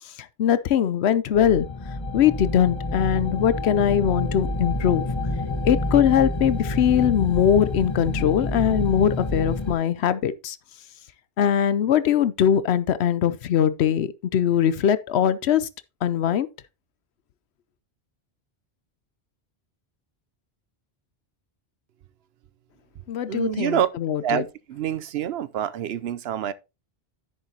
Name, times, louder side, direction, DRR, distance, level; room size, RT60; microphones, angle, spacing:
voice 1, 0.4-1.7 2.1-5.0 5.6-10.6 11.4-15.7 16.0-16.5 23.1-24.4, left 9 dB, 85° left, 0.9 m, -21 dB
sound 1, 1.3-9.7, left 2 dB, 25° left, 1.1 m, -28 dB
voice 2, 23.3-23.9 24.2-26.5, right 10 dB, 75° right, 0.8 m, -26 dB
10.5 x 7.4 x 2.8 m
omnidirectional pair, 1.1 m